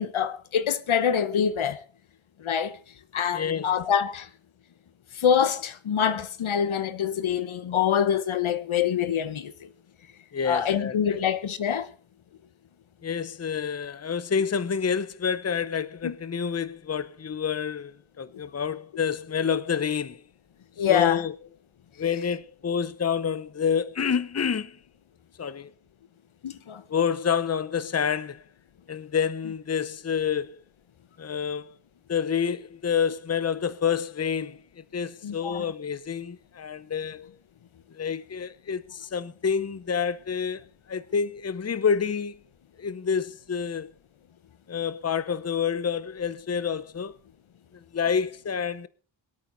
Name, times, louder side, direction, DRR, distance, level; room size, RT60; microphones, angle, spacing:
voice 1, 0.0-1.8 2.4-2.8 3.1-4.3 5.1-9.7 10.4-11.9 16.0-16.2 20.8-21.2 26.4-26.8 35.2-35.7, left 8 dB, 85° left, 1.1 m, -25 dB
voice 2, 3.3-3.7 10.3-11.2 13.0-20.2 20.9-21.3 22.0-24.7 25.4-25.7 26.9-28.4 28.9-30.6 31.2-31.8 32.1-34.6 34.9-37.3 37.9-40.6 40.9-42.3 42.8-43.9 44.7-47.1 47.7-48.9, left 7 dB, 30° left, 0.8 m, -28 dB
23.5 x 8.8 x 4.0 m
wide cardioid pair, 70°, 47 cm